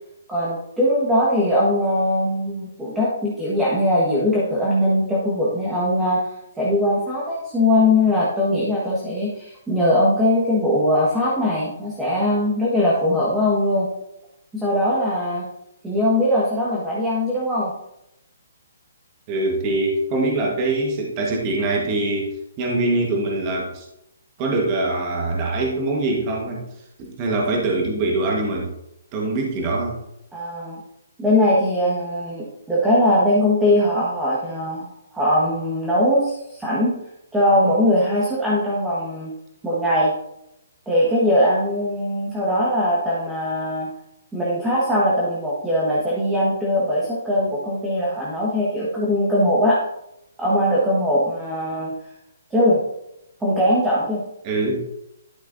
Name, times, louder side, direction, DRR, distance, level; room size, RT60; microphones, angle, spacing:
voice 1, 0.3-13.9 14.5-15.5 15.8-17.7 30.3-30.8 31.2-37.0 37.3-39.3 39.6-40.1 40.9-43.9 44.3-49.8 50.4-51.9 52.5-52.8 53.4-54.2, left 1 dB, 5° right, -6 dB, 1.5 m, -20 dB
voice 2, 19.3-22.3 22.6-23.8 24.4-26.7 27.0-28.7 29.1-30.0 54.4-54.8, right 2 dB, 25° right, -1 dB, 1.4 m, -23 dB
11.5 x 6.2 x 2.7 m, 0.83 s
hypercardioid pair, 160°, 0 cm